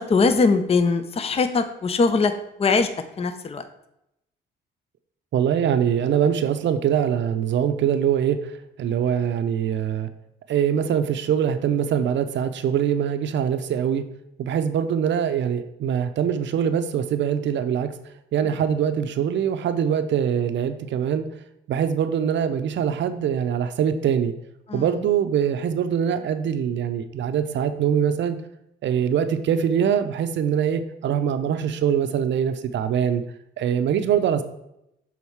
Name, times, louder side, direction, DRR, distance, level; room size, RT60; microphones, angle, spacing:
voice 1, 0.0-2.3 2.6-2.9 3.2-3.7 18.4-18.6 24.7-25.0, left 4 dB, 30° left, 9 dB, 0.6 m, -21 dB
voice 2, 5.3-8.5 8.8-10.1 10.5-14.0 14.4-17.9 18.3-21.3 21.7-24.3 24.7-28.4 28.8-33.2 33.6-34.4, right 8 dB, 65° right, 9 dB, 0.6 m, -23 dB
7.2 x 3.9 x 4.6 m, 0.82 s
cardioid pair, 90°, 20 cm